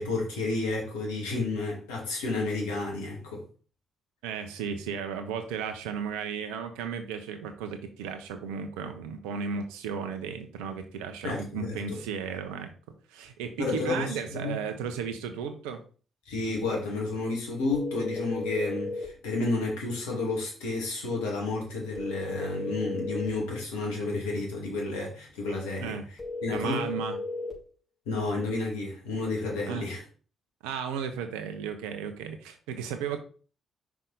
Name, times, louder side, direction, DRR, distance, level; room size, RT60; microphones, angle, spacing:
voice 1, 0.0-3.4 11.2-12.0 13.6-14.6 16.3-26.0 26.4-26.9 28.1-30.0, left 3 dB, 80° left, -1 dB, 2.1 m, -31 dB
voice 2, 4.2-12.7 13.1-15.8 25.8-26.0 26.5-27.2 29.7-29.9 30.6-33.2, right 6 dB, 75° right, 7 dB, 0.9 m, -34 dB
sound 1, 17.7-19.1 21.9-23.4 26.2-27.6, left 3 dB, 20° left, 3.5 m, -34 dB
5.8 x 4.9 x 4.0 m, 0.39 s
hypercardioid pair, 40°, 0 cm